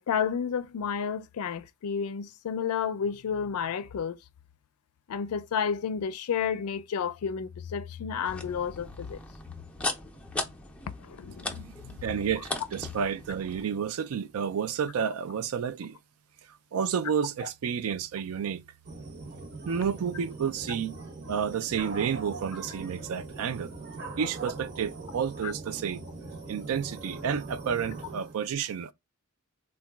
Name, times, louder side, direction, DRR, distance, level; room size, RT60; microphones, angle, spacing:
voice 1, 0.0-4.2 5.1-9.2 11.0-11.6 17.4-17.5 25.4-25.5, left 7 dB, 85° left, 0.4 m, -31 dB
sound 1, 8.3-13.6, left 2 dB, 5° left, 0.5 m, -38 dB
voice 2, 11.6-16.0 16.7-18.6 19.6-21.0 21.3-23.7 24.2-26.0 26.5-28.9, right 7 dB, 75° right, 0.3 m, -31 dB
sound 2, 18.8-28.3, right 3 dB, 50° right, 0.9 m, -41 dB
3.7 x 2.2 x 2.2 m
head